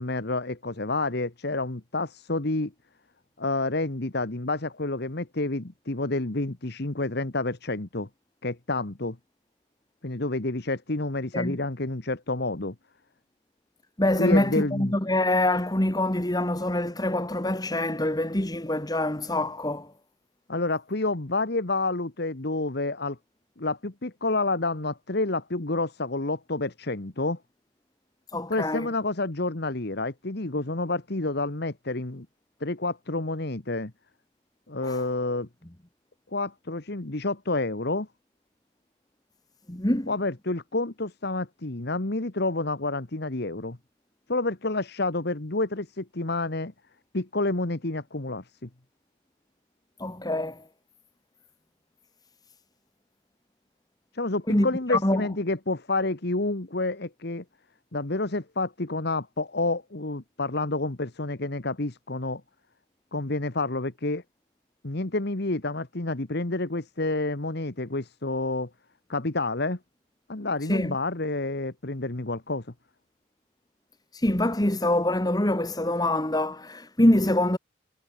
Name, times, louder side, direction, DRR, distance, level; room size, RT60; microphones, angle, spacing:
voice 1, 0.0-2.7 3.4-8.1 8.4-9.2 10.0-12.7 14.2-15.0 20.5-23.2 23.6-27.4 28.5-32.3 32.6-33.9 34.7-35.5 36.3-38.1 40.1-43.8 44.3-46.7 47.1-48.7 54.1-57.4 57.9-62.4 63.1-64.2 64.8-68.7 69.1-69.8 70.3-72.7, left 2 dB, 50° left, 1.5 m, -29 dB
voice 2, 14.0-19.9 28.3-28.9 34.8-35.0 39.7-40.1 50.0-50.6 54.5-55.2 70.6-71.0 74.1-77.6, left 1 dB, 20° left, 1.7 m, -25 dB
head